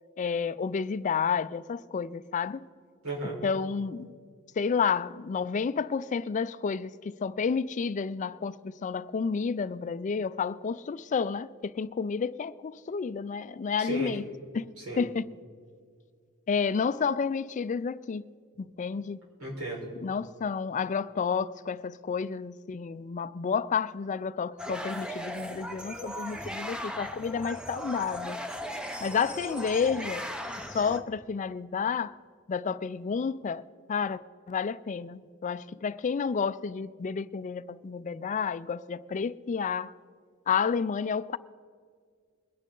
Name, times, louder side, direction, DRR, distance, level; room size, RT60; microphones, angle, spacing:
voice 1, 0.2-2.7 3.4-4.1 4.6-14.2 14.5-14.7 15.0-15.3 16.5-18.2 18.6-19.2 20.0-28.4 29.0-30.3 30.7-32.2 32.5-33.6 33.9-34.2 34.5-39.9 40.5-41.4, left 6 dB, 35° left, 0.3 m, -30 dB
voice 2, 3.0-3.4 13.8-14.1 14.8-15.0 19.4-19.9 28.9-29.0, right 1 dB, 90° right, 4.5 m, -35 dB
sound 1, 24.6-31.0, equal, 5° right, 0.7 m, -37 dB
22.5 x 10.0 x 3.8 m
head